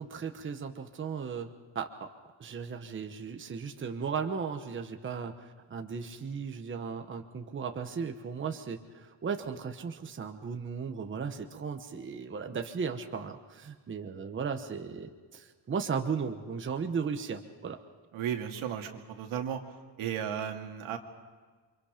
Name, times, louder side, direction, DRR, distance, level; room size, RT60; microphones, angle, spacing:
voice 1, 0.0-2.1 2.4-17.8, right 6 dB, 25° right, 5 dB, 1.1 m, -36 dB
voice 2, 18.1-19.6 20.0-21.0, right 9 dB, 85° right, 3 dB, 2.4 m, -34 dB
29.0 x 25.0 x 5.1 m, 1.5 s
cardioid pair, 170°, 48 cm